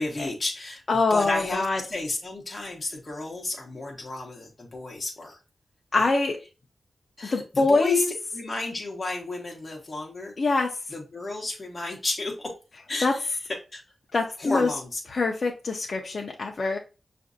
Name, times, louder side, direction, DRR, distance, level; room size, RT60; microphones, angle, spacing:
voice 1, 0.0-0.8 1.1-5.4 7.2-8.0 8.3-10.3 10.9-12.5 12.9-13.2 13.7-13.8 14.4-15.0, left 2 dB, 25° left, -1 dB, 0.9 m, -32 dB
voice 2, 0.9-1.8 5.9-6.4 7.2-8.1 10.4-10.7 13.0-13.1 14.1-14.7 15.1-16.8, left 3 dB, 45° left, 0 dB, 0.5 m, -24 dB
5.8 x 2.5 x 2.5 m, 0.31 s
wide cardioid pair, 165°, 0 cm